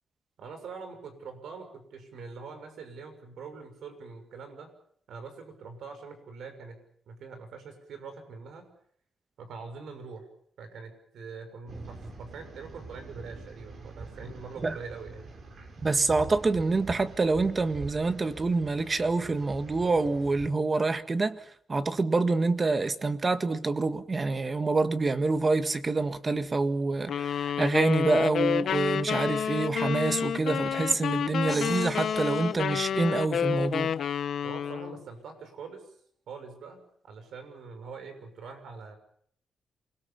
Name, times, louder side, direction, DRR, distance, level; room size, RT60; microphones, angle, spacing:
voice 1, 0.4-4.7 5.1-6.8 7.1-8.7 9.4-10.3 10.6-15.3 34.4-35.9 36.3-39.0, right 5 dB, 80° right, 6.4 m, -44 dB
sound 1, 11.7-20.5, right 3 dB, 60° right, 6.8 m, -45 dB
voice 2, 15.8-21.4 21.7-33.9, right 3 dB, 30° right, 1.8 m, -26 dB
sound 2, 27.1-35.0, left 8 dB, 70° left, 1.0 m, -29 dB
sound 3, 31.5-33.4, right 1 dB, 10° right, 2.2 m, -43 dB
28.5 x 21.5 x 7.2 m
cardioid pair, 100°, 0 cm